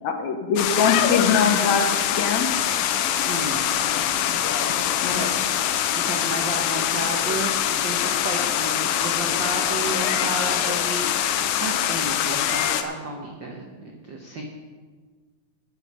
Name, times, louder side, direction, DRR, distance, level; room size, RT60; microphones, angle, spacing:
voice 1, 0.0-2.5 5.0-5.2, left 6 dB, 70° left, 5 dB, 1.9 m, -23 dB
sound 1, 0.6-12.8, left 10 dB, 90° left, 2.4 m, -23 dB
voice 2, 3.3-3.6 5.0-5.6 5.9-7.5 7.8-14.4, right 2 dB, 75° right, 0 dB, 1.0 m, -32 dB
16.5 x 6.7 x 5.5 m, 1.5 s
omnidirectional pair, 3.8 m